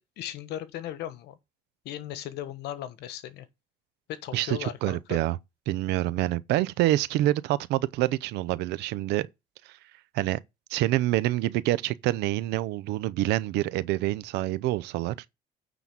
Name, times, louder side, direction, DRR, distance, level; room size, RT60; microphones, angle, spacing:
voice 1, 0.0-1.4 1.8-3.5 4.1-5.2, left 12 dB, 80° left, 1.1 m, -37 dB
voice 2, 4.3-5.4 5.7-9.3 10.1-10.4 10.7-15.1, right 15 dB, 90° right, 0.6 m, -26 dB
9.2 x 4.0 x 6.0 m
cardioid pair, 110°, 17 cm